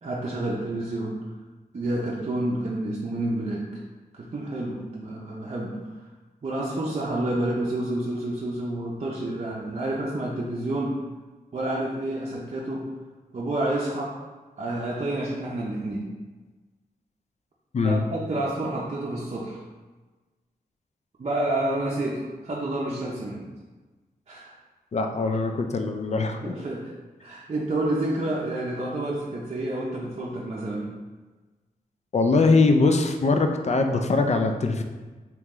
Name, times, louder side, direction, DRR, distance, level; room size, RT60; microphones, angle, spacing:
voice 1, 0.0-1.2 1.7-3.8 4.1-6.0 6.4-11.0 11.5-12.9 13.3-14.2 14.6-16.1 17.8-19.6 21.2-23.5 24.3-24.6 26.4-26.9 27.2-30.9, right 1 dB, 45° right, -4 dB, 0.6 m, -29 dB
voice 2, 17.7-18.1 24.9-26.5 32.1-34.8, left 3 dB, 45° left, 5 dB, 0.4 m, -22 dB
3.0 x 2.9 x 3.6 m, 1.3 s
cardioid pair, 60°, 16 cm